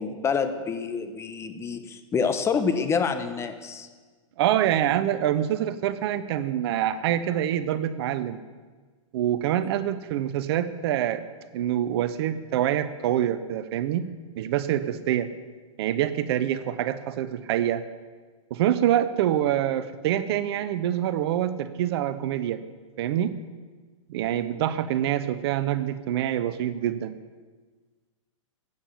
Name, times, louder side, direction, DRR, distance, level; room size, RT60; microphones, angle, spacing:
voice 1, 0.0-3.9, left 5 dB, 15° left, 9 dB, 1.0 m, -27 dB
voice 2, 4.4-8.4 9.1-11.2 11.5-14.0 14.4-15.3 15.8-17.8 18.5-22.6 23.0-23.3 24.1-27.1, right 11 dB, 50° right, 13 dB, 0.8 m, -25 dB
13.5 x 9.1 x 7.2 m, 1.4 s
hypercardioid pair, 125°, 17 cm